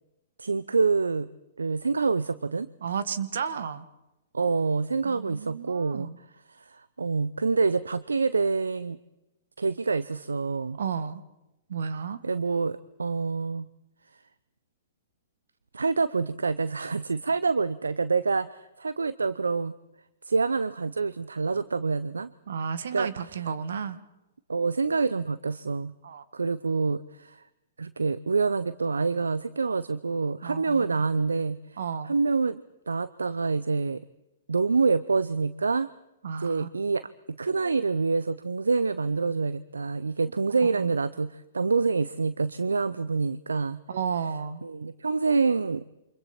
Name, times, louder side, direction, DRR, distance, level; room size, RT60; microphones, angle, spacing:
voice 1, 0.4-1.3 1.6-2.7 4.3-6.1 6.5-9.0 9.6-10.8 12.2-13.7 15.7-19.7 20.2-22.3 22.9-23.1 24.5-25.9 26.3-27.4 27.8-31.8 32.0-34.0 34.5-35.9 36.4-43.8 44.6-45.8, right 4 dB, 80° right, 16 dB, 0.7 m, -26 dB
voice 2, 2.8-3.9 5.0-6.2 10.8-11.2 11.7-12.2 22.5-24.0 26.0-26.2 30.4-31.0 31.8-32.1 36.2-36.7 40.6-41.0 43.9-44.6, right 6 dB, 65° right, 13 dB, 1.8 m, -32 dB
29.0 x 26.0 x 4.4 m, 0.95 s
figure-of-eight pair, 115°, 0 cm